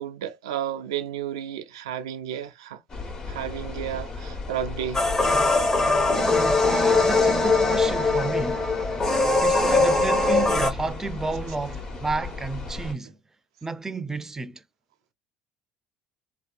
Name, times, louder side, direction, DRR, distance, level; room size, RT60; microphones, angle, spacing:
voice 1, 0.0-2.8 3.3-5.1 6.2-6.4, right 10 dB, 90° right, 0.3 m, -32 dB
sound 1, 2.9-12.9, left 3 dB, 40° left, 1.2 m, -35 dB
sound 2, 4.9-10.7, left 3 dB, 20° left, 0.8 m, -21 dB
voice 2, 6.2-8.7 9.4-13.2 13.6-14.6, right 3 dB, 15° right, 0.4 m, -31 dB
2.7 x 2.2 x 2.4 m
hypercardioid pair, 70°, 3 cm